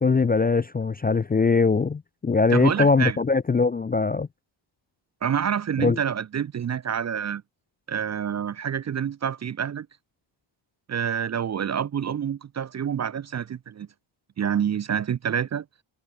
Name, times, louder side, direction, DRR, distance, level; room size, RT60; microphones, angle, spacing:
voice 1, 0.0-4.3 5.8-6.0, left 4 dB, 20° left, 0.4 m, -21 dB
voice 2, 2.5-3.2 5.2-7.4 7.9-9.9 10.9-13.9 14.4-15.7, right 8 dB, 35° right, 0.5 m, -27 dB
wide cardioid pair, 145°, 47 cm